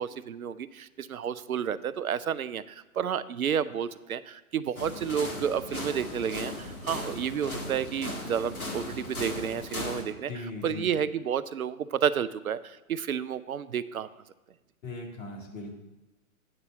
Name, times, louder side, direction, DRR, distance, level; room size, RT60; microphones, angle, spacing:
voice 1, 0.0-14.1, right 8 dB, 80° right, 15 dB, 0.5 m, -31 dB
sound 1, 4.8-10.0, left 1 dB, 85° left, 1.6 m, -37 dB
voice 2, 10.3-10.9 14.8-15.7, left 2 dB, 60° left, 0 dB, 2.2 m, -38 dB
8.9 x 4.0 x 6.5 m, 1.0 s
figure-of-eight pair, 110°, 42 cm